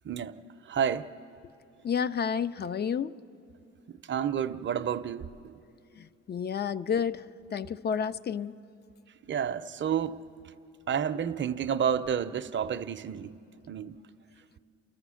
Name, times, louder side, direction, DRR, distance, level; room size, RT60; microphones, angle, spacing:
voice 1, 0.0-1.1 3.9-5.6 9.2-10.5 10.9-13.4 13.7-14.0, right 8 dB, 40° right, 0.6 m, -31 dB
voice 2, 1.8-3.1 6.0-7.2 7.5-8.6, left 7 dB, 35° left, 0.4 m, -30 dB
29.5 x 14.0 x 6.3 m
cardioid pair, 90°, 30 cm